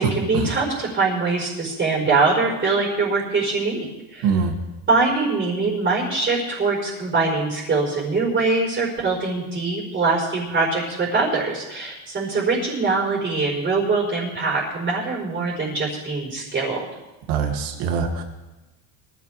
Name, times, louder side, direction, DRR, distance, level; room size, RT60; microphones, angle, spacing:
voice 1, 0.0-4.4 4.9-16.8, right 3 dB, 25° right, -3 dB, 4.8 m, -23 dB
voice 2, 4.2-4.5 17.3-18.2, right 6 dB, 85° right, 3 dB, 2.9 m, -22 dB
23.5 x 13.5 x 3.6 m, 1.1 s
cardioid pair, 145°, 39 cm